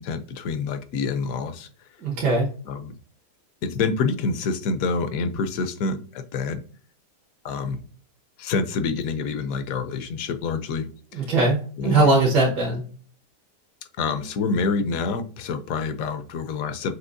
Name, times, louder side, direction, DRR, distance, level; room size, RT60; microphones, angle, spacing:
voice 1, 0.0-1.7 2.7-2.9 3.6-6.6 7.4-7.8 8.4-11.3 11.8-12.3 14.0-16.9, left 4 dB, 70° left, 10 dB, 0.9 m, -27 dB
voice 2, 2.0-2.5 11.1-12.8, right 2 dB, 85° right, -3 dB, 1.7 m, -20 dB
6.2 x 2.8 x 2.5 m, 0.43 s
omnidirectional pair, 1.7 m